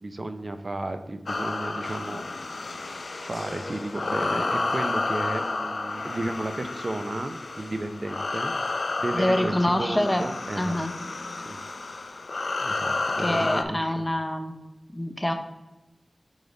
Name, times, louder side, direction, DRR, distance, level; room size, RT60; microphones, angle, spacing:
voice 1, 0.0-2.2 3.2-10.8 11.4-11.6 12.6-14.1, right 2 dB, 50° right, 8 dB, 0.4 m, -33 dB
sound 1, 1.3-13.6, left 3 dB, 70° left, 0.4 m, -31 dB
voice 2, 9.1-10.3 10.6-10.9 13.2-14.6 14.9-15.3, left 1 dB, 15° left, 6 dB, 0.6 m, -25 dB
5.1 x 4.0 x 4.8 m, 1.0 s
wide cardioid pair, 60°, 0 cm